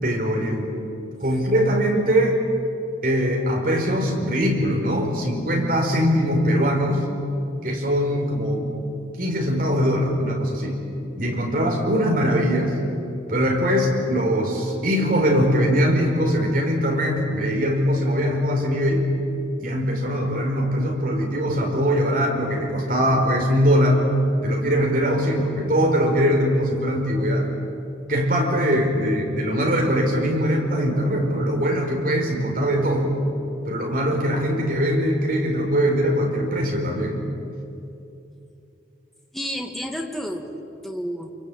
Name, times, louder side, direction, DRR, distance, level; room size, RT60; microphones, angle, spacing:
voice 1, 0.0-0.7 1.2-2.4 3.0-7.1 7.6-8.7 9.2-10.8 11.2-12.8 13.3-19.1 19.6-24.1 24.4-27.5 28.1-33.1 33.6-37.2, equal, 50° right, 1 dB, 4.9 m, -21 dB
voice 2, 39.3-41.3, equal, ahead, 2 dB, 2.0 m, -31 dB
28.5 x 23.5 x 8.7 m, 2.8 s
head